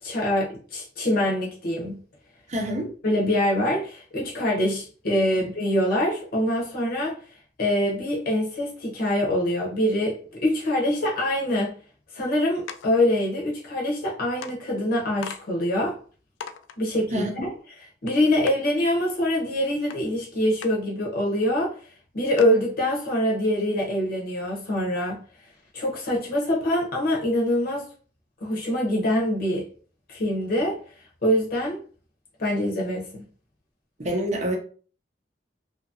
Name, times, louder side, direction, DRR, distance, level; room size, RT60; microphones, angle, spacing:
voice 1, 0.0-2.0 3.0-7.2 7.6-11.7 12.1-16.0 16.8-17.5 18.0-25.2 25.7-27.9 28.4-29.7 30.1-30.8 31.2-31.8 32.4-33.2, left 1 dB, 55° left, 0.7 m, -24 dB
voice 2, 2.5-2.9 5.3-5.4 17.1-17.5 34.0-34.6, equal, 40° right, 0.7 m, -27 dB
sound 1, 12.7-13.0 14.0-14.1 14.4-14.6 15.2-15.4 15.9-16.0 16.4-16.8 18.1-18.2 18.5-18.6 19.9-20.0 20.6-20.7 21.3-21.4 21.7-21.8 22.4-22.6, left 7 dB, 85° left, 0.3 m, -38 dB
2.7 x 2.4 x 2.6 m
head